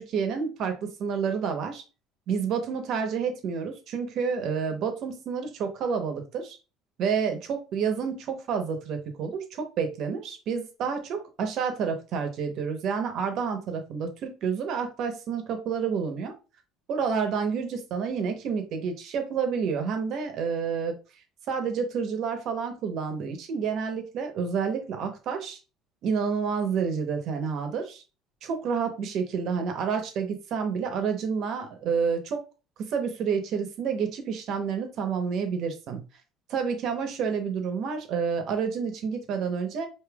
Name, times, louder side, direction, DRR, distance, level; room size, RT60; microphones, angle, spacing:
voice 1, 0.0-1.8 2.3-6.6 7.0-16.3 16.9-20.9 21.5-25.6 26.0-28.0 28.4-32.4 32.8-36.0 36.5-39.9, right 6 dB, 55° right, 6 dB, 0.9 m, -29 dB
5.1 x 2.7 x 2.3 m, 0.32 s
cardioid pair, 135°, 0 cm